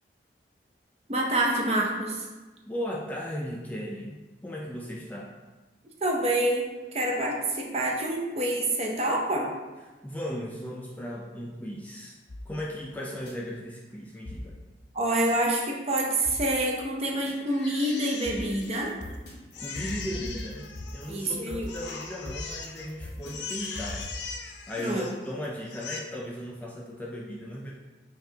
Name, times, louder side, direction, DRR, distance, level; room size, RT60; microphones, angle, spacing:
voice 1, 1.1-2.3 6.0-6.7 6.9-9.5 14.9-18.9 21.1-21.7 24.8-25.0, right 1 dB, 35° right, 0 dB, 0.6 m, -27 dB
voice 2, 2.7-5.3 10.0-12.2 12.5-14.5 19.6-24.1 24.7-27.7, equal, 10° left, -3 dB, 0.3 m, -36 dB
sound 1, 12.3-13.3 14.2-15.3 16.2-17.3 18.2-24.1, left 1 dB, 60° left, 1.0 m, -41 dB
Crying sobbing, 17.5-19.2 19.5-21.3 21.7-22.9 23.2-25.3 25.6-26.0, left 5 dB, 80° left, 0.5 m, -40 dB
5.5 x 2.4 x 2.7 m, 1.2 s
head